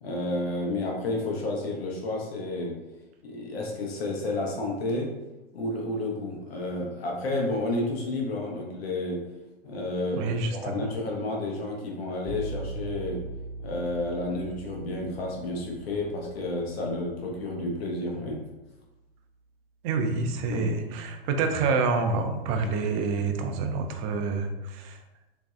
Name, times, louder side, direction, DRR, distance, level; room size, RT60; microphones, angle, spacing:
voice 1, 0.0-2.7 3.2-5.1 5.5-9.2 9.6-13.2 13.6-18.4 20.5-20.7, left 2 dB, 80° left, -1 dB, 0.8 m, -31 dB
voice 2, 10.2-10.9 19.8-25.0, right 4 dB, 35° right, 6 dB, 0.4 m, -27 dB
sound 1, 12.3-18.0, right 2 dB, 15° left, 0.6 m, -41 dB
3.1 x 2.6 x 2.3 m, 1.0 s
hypercardioid pair, 115°, 30 cm